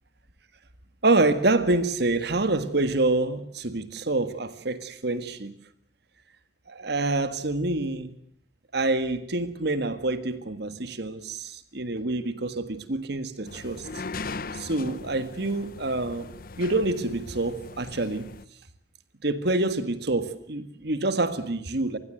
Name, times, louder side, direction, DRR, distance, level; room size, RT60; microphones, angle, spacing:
voice 1, 1.0-5.5 6.7-8.1 8.7-13.9 14.5-16.3 16.6-18.3 19.2-22.0, right 2 dB, 65° right, 11 dB, 1.7 m, -26 dB
sound 1, 13.4-18.4, left 3 dB, 55° left, 1.0 m, -39 dB
27.0 x 20.5 x 7.7 m, 0.66 s
head